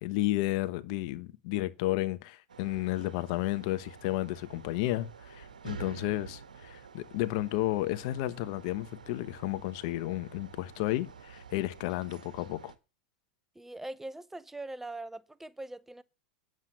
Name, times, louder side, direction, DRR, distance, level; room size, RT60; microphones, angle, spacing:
voice 1, 0.0-12.7, left 16 dB, 60° left, 1.1 m, -32 dB
sound 1, 2.5-12.7, right 6 dB, 85° right, 1.3 m, -49 dB
voice 2, 13.6-16.0, right 2 dB, 5° right, 0.7 m, -42 dB
9.7 x 7.7 x 6.9 m
hypercardioid pair, 100°, 4 cm